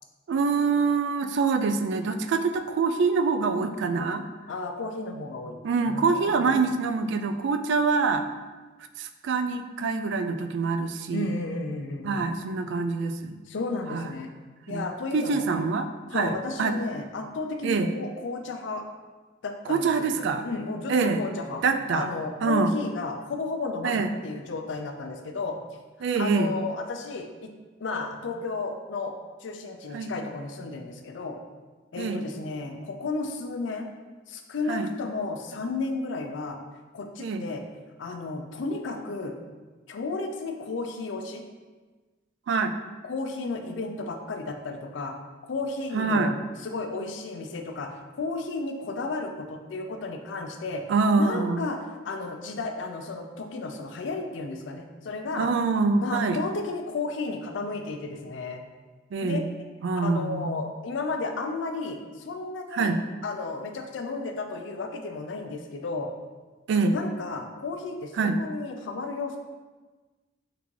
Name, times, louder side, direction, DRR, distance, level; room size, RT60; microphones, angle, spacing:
voice 1, 0.3-4.2 5.6-8.3 9.0-11.3 12.0-13.3 13.9-14.1 14.7-14.9 15.1-16.8 17.6-17.9 19.7-20.4 20.9-21.2 21.6-22.1 22.4-22.7 23.8-24.1 26.0-26.5 29.9-30.2 32.0-32.2 34.7-34.9 37.2-37.4 42.5-42.7 45.9-46.4 50.9-51.7 55.4-56.4 59.1-59.5 59.8-60.6 62.7-63.0 66.7-67.0 68.2-68.4, right 4 dB, 70° right, 8 dB, 0.3 m, -25 dB
voice 2, 4.5-5.6 5.9-6.5 11.1-12.2 13.5-14.3 14.7-15.5 16.1-18.9 19.4-21.6 21.9-25.6 26.1-27.5 27.8-29.1 29.4-31.4 31.9-33.9 34.3-36.6 36.9-37.6 38.0-39.4 39.9-41.5 43.0-45.1 45.4-46.3 46.6-50.8 51.1-55.5 56.0-58.6 59.2-59.4 60.0-62.9 63.2-66.1 66.9-69.4, left 3 dB, 70° left, 5 dB, 0.4 m, -33 dB
3.8 x 3.4 x 3.2 m, 1.3 s
head